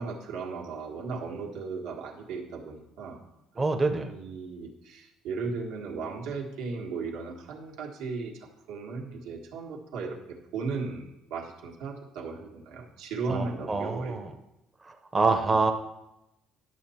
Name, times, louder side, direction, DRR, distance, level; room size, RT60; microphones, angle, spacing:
voice 1, 0.0-3.2 4.1-14.3 15.5-15.6, right 4 dB, 90° right, 1 dB, 1.5 m, -36 dB
voice 2, 3.6-4.1 13.3-14.3 14.8-15.7, right 3 dB, 15° right, 5 dB, 0.5 m, -26 dB
10.5 x 6.6 x 4.2 m, 0.91 s
cardioid pair, 180°, 0 cm